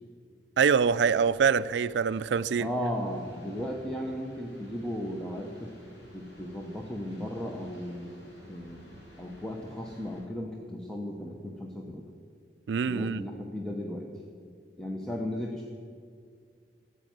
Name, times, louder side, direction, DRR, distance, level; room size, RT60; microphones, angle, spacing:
voice 1, 0.6-2.7 12.7-13.2, right 6 dB, 75° right, 17 dB, 0.4 m, -24 dB
sound 1, 0.8-10.2, equal, 70° left, 4.2 m, -53 dB
voice 2, 2.6-5.7 6.1-8.8 9.2-12.1 12.9-14.1 14.8-15.7, equal, 5° left, 0 dB, 0.9 m, -35 dB
13.5 x 8.3 x 9.2 m, 2.1 s
head